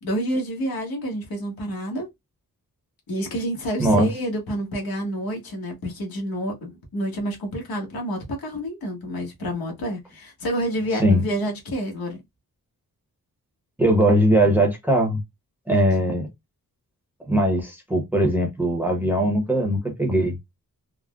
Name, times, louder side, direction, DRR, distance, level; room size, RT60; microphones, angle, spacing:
voice 1, 0.0-2.1 3.1-12.2, equal, 85° left, 1.1 m, -29 dB
voice 2, 13.8-15.2 15.7-16.3 17.2-20.4, right 1 dB, 5° right, 0.7 m, -20 dB
3.6 x 2.0 x 2.2 m
wide cardioid pair, 175°, 35 cm